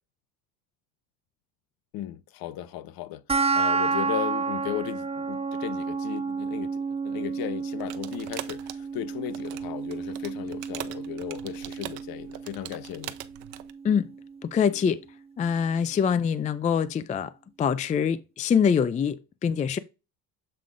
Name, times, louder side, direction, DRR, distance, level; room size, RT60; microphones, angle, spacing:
voice 1, 1.9-3.2 3.5-13.1, left 13 dB, 55° left, 0.8 m, -36 dB
sound 1, 3.3-14.3, right 4 dB, 15° right, 0.7 m, -31 dB
sound 2, 7.8-13.7, right 15 dB, 70° right, 0.9 m, -42 dB
voice 2, 14.4-15.0 15.4-17.3 17.6-19.8, left 7 dB, 20° left, 0.4 m, -24 dB
7.8 x 3.6 x 3.7 m
supercardioid pair, 90°, 43 cm